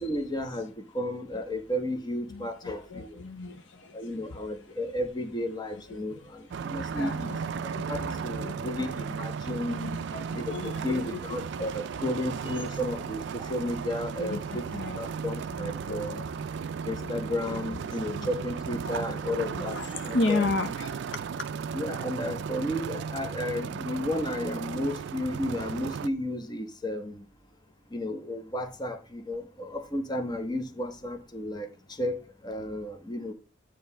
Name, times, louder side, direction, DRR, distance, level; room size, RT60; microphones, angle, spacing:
voice 1, 0.0-3.2 3.9-9.8 10.3-14.6 14.9-16.2 16.8-20.5 21.7-27.2 27.9-31.7 32.0-32.2 32.4-33.3, left 1 dB, 20° left, 0.9 m, -33 dB
voice 2, 2.3-4.6 5.9-6.0 6.6-8.9 9.7-11.2 11.5-11.7 12.5-12.6 14.2-15.2 15.5-16.6 17.0-18.3 18.8-19.1 19.5-21.5, left 3 dB, 60° left, 0.7 m, -35 dB
sound 1, 6.5-26.1, right 6 dB, 60° right, 0.3 m, -35 dB
9.2 x 3.1 x 5.4 m
head